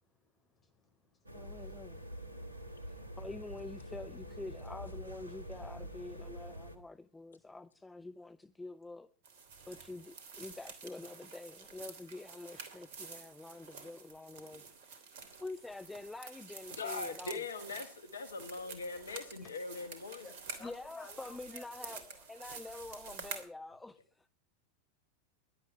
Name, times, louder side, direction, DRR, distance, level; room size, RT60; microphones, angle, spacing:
voice 1, 0.5-1.6 19.4-19.5 20.2-22.3, left 4 dB, 25° left, 5.1 m, -56 dB
voice 2, 1.3-2.0 2.9-9.1 9.7-15.0 15.4-17.5 20.6-24.3, left 2 dB, 10° left, 0.7 m, -47 dB
sound 1, 1.3-6.8, equal, 85° right, 2.1 m, -46 dB
sound 2, 9.2-23.5, right 5 dB, 55° right, 3.1 m, -49 dB
voice 3, 16.8-20.2, left 4 dB, 75° left, 1.4 m, -41 dB
17.0 x 11.5 x 5.6 m
figure-of-eight pair, 90°, 0 cm